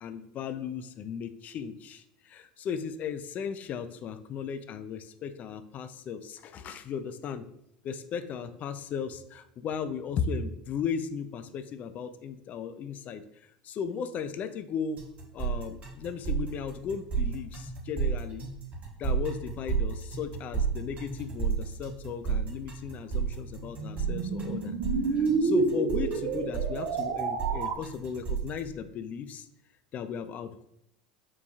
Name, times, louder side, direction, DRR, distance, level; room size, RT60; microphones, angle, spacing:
voice 1, 0.0-7.5 7.8-13.2 13.6-15.0 15.3-18.5 19.0-24.8 25.1-29.5 29.9-30.7, left 6 dB, 40° left, 11 dB, 0.3 m, -36 dB
sound 1, 15.0-28.6, right 6 dB, 35° right, 1.0 m, -32 dB
sound 2, 22.8-27.8, right 4 dB, 60° right, 0.5 m, -29 dB
5.5 x 2.2 x 2.6 m, 0.76 s
hypercardioid pair, 75°, 4 cm